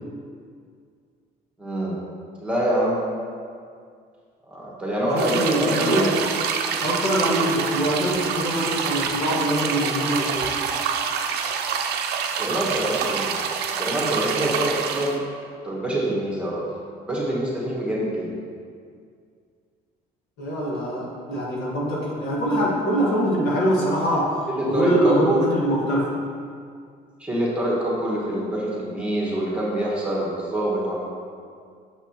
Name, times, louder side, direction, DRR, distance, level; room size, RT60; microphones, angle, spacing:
voice 1, 1.6-2.0 2.4-3.1 4.5-6.1 12.4-13.4 13.8-15.2 15.6-16.6 17.0-18.3 24.5-25.4 27.2-31.1, right 1 dB, 5° right, -6 dB, 1.6 m, -25 dB
voice 2, 5.1-6.1 6.8-10.5 20.4-26.1, equal, 80° left, -5 dB, 1.6 m, -23 dB
sound 1, 5.2-15.2, right 6 dB, 75° right, 0.5 m, -26 dB
6.7 x 5.8 x 2.9 m, 2.2 s
cardioid pair, 110°, 17 cm